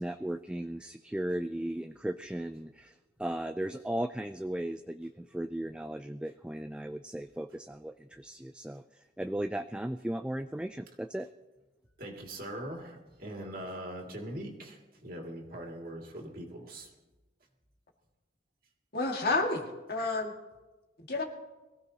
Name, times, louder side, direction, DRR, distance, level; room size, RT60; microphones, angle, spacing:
voice 1, 0.0-2.9 3.2-11.3, right 1 dB, 5° right, 7 dB, 0.3 m, -36 dB
voice 2, 12.0-16.9, right 1 dB, 55° right, 0 dB, 2.5 m, -41 dB
voice 3, 18.9-20.3 21.1-21.2, left 3 dB, 60° left, 1 dB, 2.1 m, -30 dB
22.5 x 15.5 x 2.9 m, 1.1 s
head